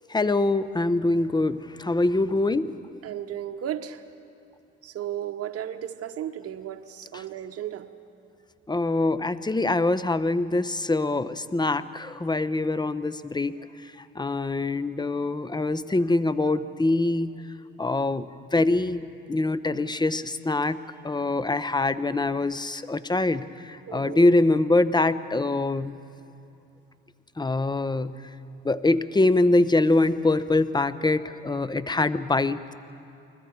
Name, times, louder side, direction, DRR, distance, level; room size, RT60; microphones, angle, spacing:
voice 1, 0.1-2.7 7.1-7.2 8.7-13.7 14.1-17.4 17.8-20.8 21.0-26.0 27.4-28.1 28.6-32.7, left 2 dB, 15° left, 14 dB, 0.9 m, -24 dB
voice 2, 3.0-4.0 4.8-7.9 23.9-24.2, right 10 dB, 50° right, 6 dB, 1.1 m, -34 dB
29.0 x 21.0 x 4.8 m, 2.6 s
hypercardioid pair, 60°, 30 cm